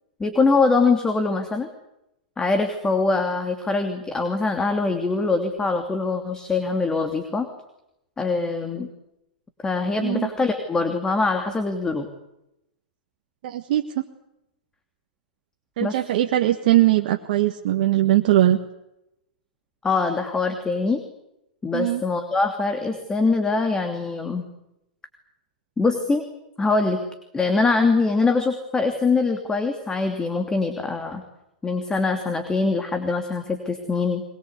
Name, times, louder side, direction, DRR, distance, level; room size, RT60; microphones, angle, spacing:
voice 1, 0.2-1.7 2.4-7.5 8.2-8.9 9.6-12.1 15.8-16.0 19.8-21.0 21.6-24.4 25.8-26.2 26.6-27.0 27.3-31.2 31.6-34.2, left 3 dB, 15° left, 6 dB, 2.9 m, -23 dB
voice 2, 13.4-14.0 15.8-18.6 21.7-22.0, right 14 dB, 60° right, 5 dB, 1.6 m, -20 dB
22.5 x 22.5 x 8.3 m, 0.86 s
hypercardioid pair, 110°, 5 cm